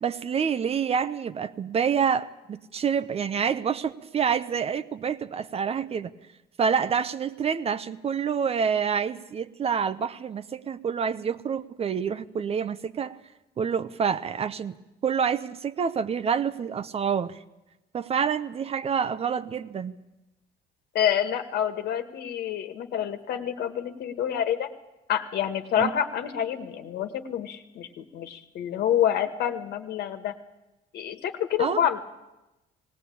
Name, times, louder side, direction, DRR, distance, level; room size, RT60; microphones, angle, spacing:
voice 1, 0.0-6.1 6.6-13.2 13.6-14.8 15.0-17.4 17.9-19.9 25.8-25.9 31.6-31.8, right 7 dB, 35° right, 14 dB, 0.8 m, -27 dB
voice 2, 20.9-24.7 25.1-30.3 30.9-32.0, left 9 dB, 70° left, 8 dB, 1.5 m, -27 dB
18.5 x 17.5 x 8.5 m, 1.0 s
cardioid pair, 110°, 17 cm